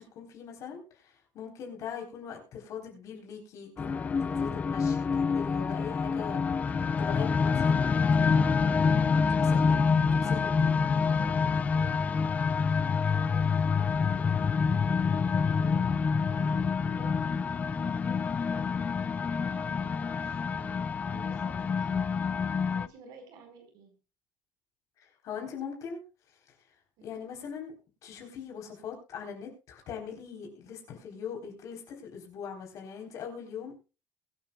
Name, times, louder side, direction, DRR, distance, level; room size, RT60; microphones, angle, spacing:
voice 1, 0.0-6.4 7.0-8.7 9.4-9.8 10.2-10.7 25.0-26.0 26.3-26.4 27.0-27.7 28.0-33.8, left 7 dB, 45° left, 1 dB, 4.0 m, -41 dB
sound 1, 3.8-22.9, left 5 dB, 20° left, 0.5 m, -27 dB
voice 2, 8.7-10.5 11.0-12.1 12.6-14.6 15.0-15.9 16.3-17.5 17.8-18.7 19.3-23.9 27.0-27.2, right 4 dB, 65° right, 4 dB, 4.8 m, -53 dB
23.0 x 9.3 x 2.3 m, 0.32 s
cardioid pair, 170°, 8 cm